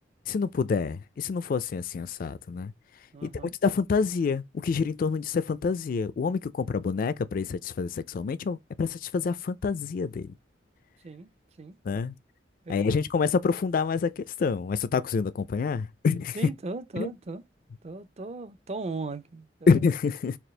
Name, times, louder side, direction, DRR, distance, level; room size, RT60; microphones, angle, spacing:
voice 1, 0.3-2.7 3.2-3.3 3.6-10.3 11.9-12.1 12.7-16.4 17.0-17.1 19.7-20.4, left 5 dB, 50° left, 0.3 m, -27 dB
voice 2, 3.1-3.5 11.0-11.3 11.6-11.8 12.6-13.0 16.3-17.4 17.8-19.9, right 3 dB, 35° right, 0.5 m, -37 dB
4.3 x 2.4 x 3.2 m
head